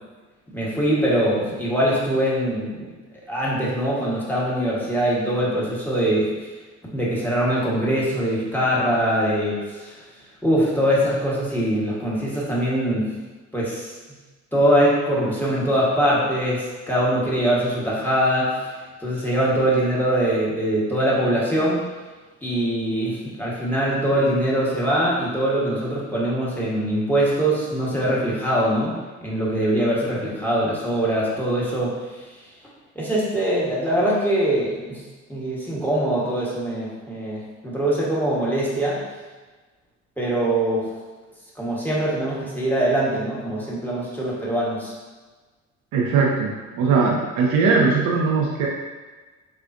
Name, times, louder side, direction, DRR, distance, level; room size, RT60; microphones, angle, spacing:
voice 1, 0.5-2.9 3.3-6.3 6.9-10.0 10.4-13.1 13.5-13.9 14.5-18.6 19.0-21.8 22.4-32.0 32.9-35.0 35.3-39.0 40.2-40.9 41.6-44.9, right 1 dB, 5° left, -6 dB, 1.1 m, -22 dB
voice 2, 45.9-48.7, right 4 dB, 55° right, -2 dB, 0.6 m, -20 dB
3.6 x 2.4 x 2.5 m, 1.3 s
hypercardioid pair, 55°, 36 cm